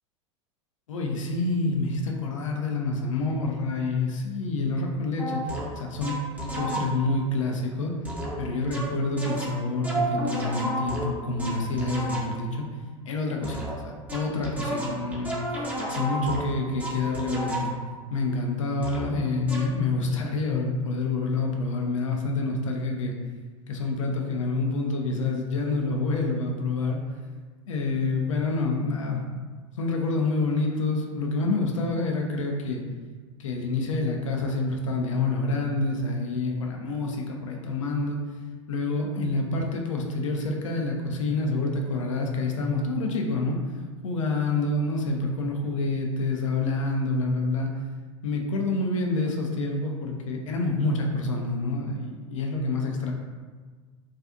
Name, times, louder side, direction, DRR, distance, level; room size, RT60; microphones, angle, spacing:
voice 1, 0.9-6.2 6.6-7.9 8.4-12.7 13.1-15.4 15.9-17.7 18.1-23.2 23.7-27.0 27.7-29.4 29.8-32.8 33.4-38.2 38.7-43.6 44.0-47.7 48.2-53.1, left 3 dB, 70° left, 1 dB, 0.5 m, -27 dB
sound 1, 5.2-7.2 8.0-12.5 13.4-18.0 18.8-19.1 19.5-19.8, right 1 dB, 10° right, 0.5 m, -32 dB
2.4 x 2.3 x 2.4 m, 1.5 s
figure-of-eight pair, 80°, 17 cm